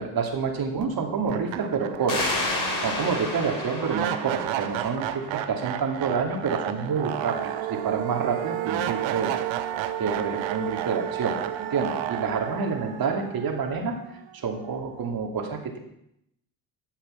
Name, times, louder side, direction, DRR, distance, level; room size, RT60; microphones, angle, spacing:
voice 1, 0.0-2.5 2.8-9.3 10.0-15.8, right 5 dB, 45° right, 3 dB, 2.5 m, -28 dB
sound 1, 0.8-0.9 1.3-14.3, right 12 dB, 65° right, 1.0 m, -32 dB
sound 2, 2.1-5.5, left 2 dB, 40° left, 4.2 m, -31 dB
11.0 x 7.3 x 5.6 m, 0.78 s
hypercardioid pair, 65°, 50 cm